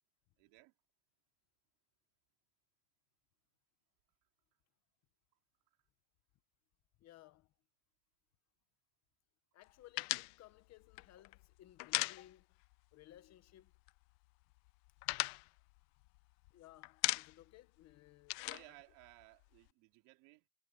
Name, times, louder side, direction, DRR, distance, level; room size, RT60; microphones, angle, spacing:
voice 1, 0.4-0.7 18.4-20.5, right 24 dB, 70° right, 3.4 m, -60 dB
voice 2, 7.0-7.5 9.5-12.5 12.9-13.7 16.5-18.4, left 14 dB, 35° left, 0.8 m, -60 dB
sound 1, 10.0-12.8 13.0-13.2 13.5-14.2 14.5-16.5 16.8-17.6 17.8-19.7, left 26 dB, 75° left, 0.6 m, -39 dB
cardioid pair, 170°, 44 cm